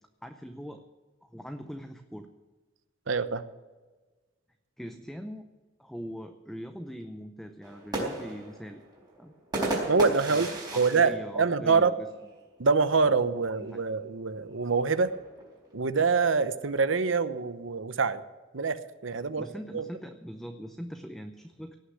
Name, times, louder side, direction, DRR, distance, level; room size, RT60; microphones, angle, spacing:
voice 1, 0.2-0.8 1.2-2.3 4.8-5.5 5.8-8.8 9.1-9.3 10.3-12.1 13.1-13.2 13.6-13.8 19.4-21.8, equal, ahead, 6 dB, 0.6 m, -41 dB
voice 2, 3.1-3.4 9.9-10.5 10.7-11.9 12.6-15.1 15.7-18.2 18.5-19.5 19.7-19.8, right 4 dB, 75° right, 13 dB, 0.8 m, -25 dB
sound 1, 7.6-12.3 12.7-12.8 13.1-13.5 14.4-15.9, right 2 dB, 20° right, 4.3 m, -35 dB
17.5 x 6.5 x 9.6 m, 1.3 s
head